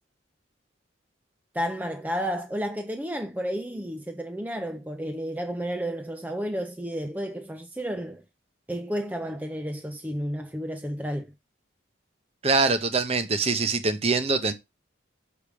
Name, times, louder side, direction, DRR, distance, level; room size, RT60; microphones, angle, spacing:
voice 1, 1.5-8.2 8.7-11.3, equal, 10° right, 0.5 m, -31 dB
voice 2, 12.4-14.5, right 3 dB, 30° right, 0.8 m, -24 dB
6.5 x 4.9 x 5.0 m
head